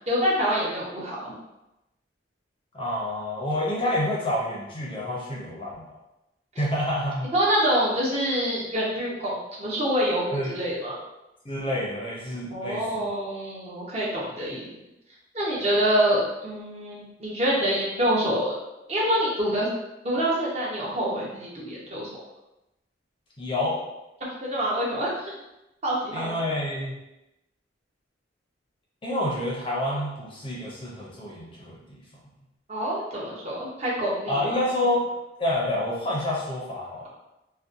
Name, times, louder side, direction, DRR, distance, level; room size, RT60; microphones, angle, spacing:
voice 1, 0.1-1.3 7.3-11.0 12.5-14.6 15.3-18.5 18.9-19.7 20.0-22.1 24.4-25.3 25.8-26.3 32.7-34.6, equal, 35° right, -5 dB, 0.6 m, -26 dB
voice 2, 2.7-5.9 6.6-7.3 10.3-10.5 11.4-13.1 23.4-23.8 26.1-26.9 29.0-32.0 34.3-35.1 35.4-37.0, left 1 dB, 25° left, -4 dB, 0.5 m, -28 dB
2.6 x 2.1 x 2.4 m, 0.94 s
head